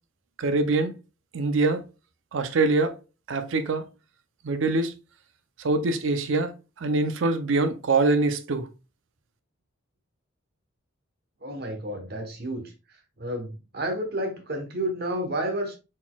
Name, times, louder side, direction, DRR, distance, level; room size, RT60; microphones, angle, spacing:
voice 1, 0.4-0.9 1.3-1.8 2.3-2.9 3.3-3.9 4.4-4.9 5.6-6.5 6.8-8.7, right 3 dB, 70° right, 0.5 m, -24 dB
voice 2, 11.4-12.7 13.2-15.8, right 1 dB, 50° right, 1.0 m, -30 dB
4.2 x 4.0 x 2.3 m
head